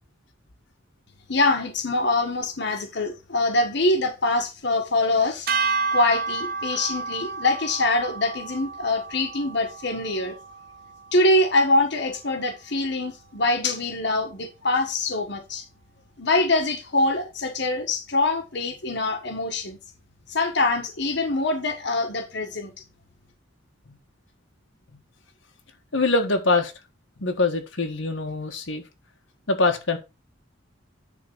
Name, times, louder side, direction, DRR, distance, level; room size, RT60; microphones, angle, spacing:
voice 1, 1.3-10.3 11.1-15.6 16.2-19.8 20.3-22.7, left 2 dB, 60° left, 1.5 m, -24 dB
sound 1, 5.5-11.8, right 4 dB, 50° right, 0.8 m, -31 dB
voice 2, 25.9-26.7 27.2-28.8 29.5-30.0, left 3 dB, 80° left, 1.5 m, -23 dB
10.0 x 3.8 x 5.5 m
head